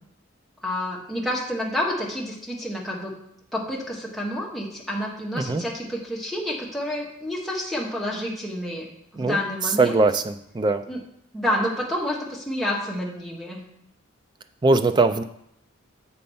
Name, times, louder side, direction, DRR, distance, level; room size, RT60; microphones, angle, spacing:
voice 1, 0.6-3.1 3.5-8.9 9.1-10.0 10.9-11.0 11.3-13.6, left 1 dB, ahead, -4 dB, 1.2 m, -29 dB
voice 2, 9.2-10.8 14.6-15.2, right 3 dB, 20° right, 9 dB, 0.3 m, -21 dB
7.6 x 4.3 x 5.4 m, 0.73 s
head